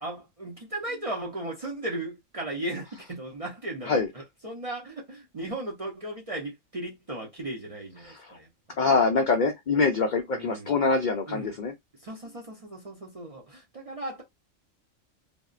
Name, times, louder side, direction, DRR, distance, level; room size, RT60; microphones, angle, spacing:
voice 1, 0.0-8.8 10.3-10.8 11.3-11.5 12.0-14.2, right 1 dB, 40° right, 0.5 m, -36 dB
voice 2, 8.0-8.4 8.8-11.7, left 4 dB, 80° left, 0.4 m, -24 dB
3.4 x 2.0 x 2.3 m
omnidirectional pair, 1.4 m